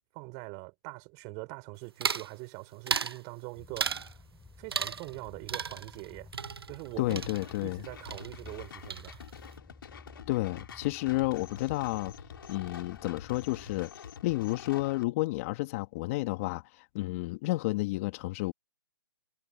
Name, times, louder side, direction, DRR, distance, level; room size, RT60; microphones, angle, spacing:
voice 1, 0.1-4.1 4.6-6.3 6.7-7.2 7.6-9.2, right 31 dB, 30° right, 5.0 m, -43 dB
sound 1, 2.0-2.3 2.9-3.2 3.8-4.1 4.7-5.2 5.5-7.8 8.1-8.6 8.9-9.5, right 6 dB, 90° right, 0.8 m, -35 dB
sound 2, 3.5-13.9, left 3 dB, 5° left, 7.8 m, -54 dB
voice 2, 7.0-7.8 10.3-12.1 12.5-18.5, left 20 dB, 35° left, 1.9 m, -31 dB
sound 3, 7.1-15.0, left 8 dB, 70° left, 3.4 m, -47 dB
hypercardioid pair, 140°, 12 cm